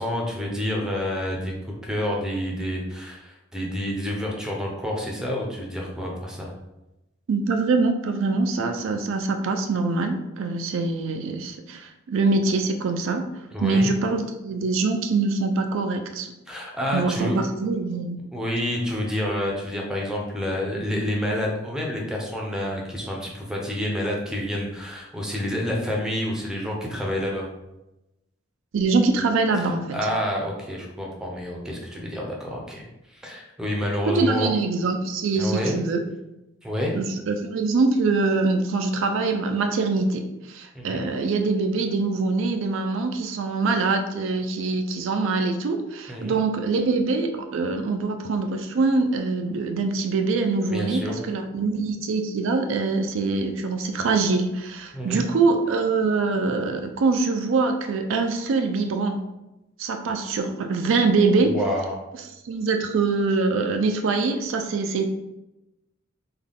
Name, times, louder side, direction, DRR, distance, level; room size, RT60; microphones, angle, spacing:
voice 1, 0.0-1.5 1.8-6.5 13.5-13.9 16.5-17.4 18.3-27.5 29.6-34.5 35.4-35.8 36.6-36.9 40.7-41.0 46.1-46.4 50.7-51.2 54.9-55.2 61.4-62.0, left 1 dB, 5° right, -1 dB, 0.6 m, -28 dB
voice 2, 7.3-13.3 13.6-16.3 16.9-18.2 28.7-29.8 34.0-36.0 37.0-59.2 59.8-61.6 62.4-65.2, right 3 dB, 65° right, 5 dB, 0.4 m, -24 dB
3.7 x 2.3 x 3.5 m, 0.94 s
head